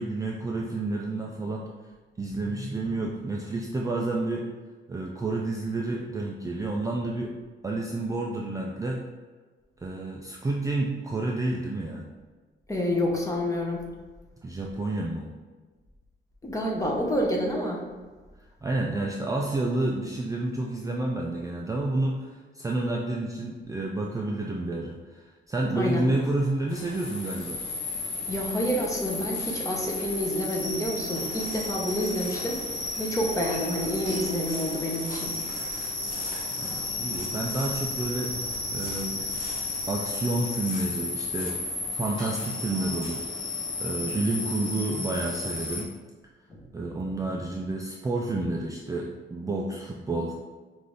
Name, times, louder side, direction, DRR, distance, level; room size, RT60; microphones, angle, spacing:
voice 1, 0.0-1.7 2.2-4.5 4.9-7.3 7.6-9.0 9.8-12.0 14.4-15.3 18.6-27.6 36.6-38.3 38.7-39.3 39.9-41.6 41.9-43.2 43.8-45.9 46.7-50.3, right 2 dB, 15° right, -1 dB, 0.4 m, -30 dB
voice 2, 12.7-13.9 16.4-17.8 25.7-26.0 28.3-32.6 33.0-35.4 46.5-46.6, equal, 15° left, -1 dB, 0.8 m, -28 dB
sound 1, 26.7-45.8, left 3 dB, 85° left, 1.2 m, -33 dB
sound 2, 31.4-32.7 34.2-41.7 42.1-42.2, left 2 dB, 45° left, 1.1 m, -45 dB
5.4 x 2.6 x 3.3 m, 1.3 s
cardioid pair, 125°, 19 cm